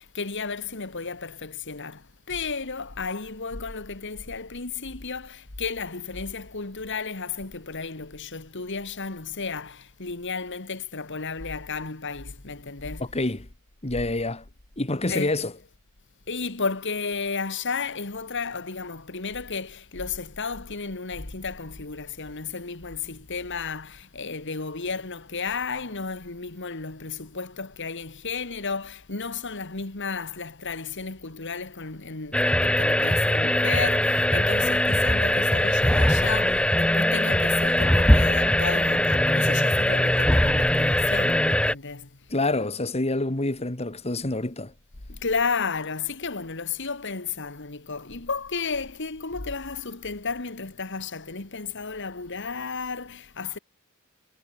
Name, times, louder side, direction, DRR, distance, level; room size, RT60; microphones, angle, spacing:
voice 1, 0.0-13.1 15.1-15.4 16.3-42.2 45.1-53.6, left 4 dB, 55° left, 2.0 m, -33 dB
voice 2, 13.0-13.5 13.8-14.4 14.8-15.5 42.3-44.7, left 2 dB, 30° left, 1.7 m, -27 dB
sound 1, 32.3-41.7, left 1 dB, 5° left, 1.1 m, -21 dB
head